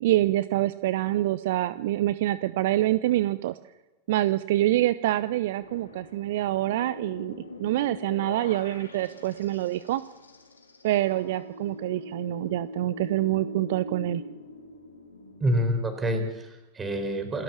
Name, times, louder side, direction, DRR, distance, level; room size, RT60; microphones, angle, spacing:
voice 1, 0.0-3.6 4.1-10.0 10.8-14.2, right 15 dB, 55° right, 16 dB, 0.6 m, -26 dB
sound 1, 5.6-15.7, left 2 dB, 75° left, 3.3 m, -43 dB
voice 2, 15.4-17.4, equal, 15° right, 7 dB, 4.4 m, -27 dB
28.0 x 12.5 x 7.3 m, 1.1 s
figure-of-eight pair, 90°, 0 cm